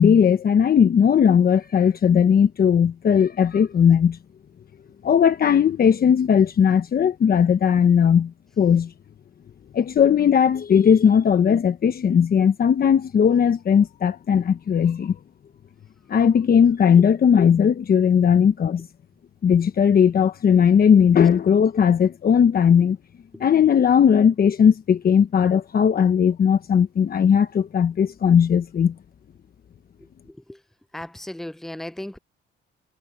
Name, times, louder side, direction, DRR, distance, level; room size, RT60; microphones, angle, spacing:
voice 1, 0.0-4.2 5.0-8.9 9.7-15.1 16.1-18.9 19.4-23.0 23.4-28.9, left 7 dB, 50° left, 1.1 m, -18 dB
voice 2, 30.9-32.2, left 1 dB, ahead, 0.6 m, -35 dB
cardioid pair, 90°, 20 cm